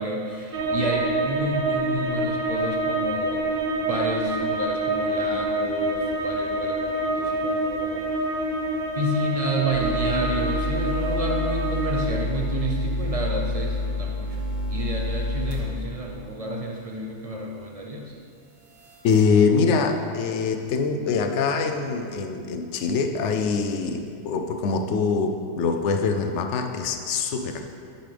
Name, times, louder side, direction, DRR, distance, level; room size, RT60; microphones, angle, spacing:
voice 1, 0.0-8.1 8.9-18.1, right 1 dB, 45° right, -1 dB, 0.4 m, -30 dB
sound 1, 0.5-12.1, right 2 dB, 80° right, 1.1 m, -26 dB
sound 2, 9.7-15.6 16.1-16.2 18.8-19.2, left 2 dB, 65° right, 1.4 m, -28 dB
voice 2, 19.0-27.7, left 5 dB, 65° left, 5 dB, 0.8 m, -24 dB
10.0 x 5.5 x 3.3 m, 2.3 s
omnidirectional pair, 1.4 m